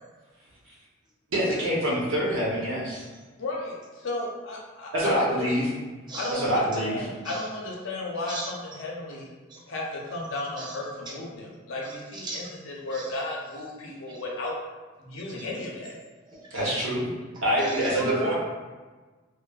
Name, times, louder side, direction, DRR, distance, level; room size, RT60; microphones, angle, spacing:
voice 1, 1.3-3.0 4.9-5.6 6.3-7.0 16.5-17.1 17.4-18.3, equal, 90° right, -6 dB, 0.8 m, -25 dB
voice 2, 3.4-5.5 6.2-9.3 9.7-14.5 15.0-16.0, left 2 dB, 90° left, -2 dB, 0.6 m, -34 dB
voice 3, 6.1-6.8 7.2-7.5 8.3-8.5 9.5-9.6 10.6-10.8 11.8-12.5 12.9-13.1 14.1-14.2 15.3-15.5 16.2-16.6 17.6-18.3, right 2 dB, 20° right, -3 dB, 0.4 m, -38 dB
3.0 x 2.0 x 2.3 m, 1.3 s
head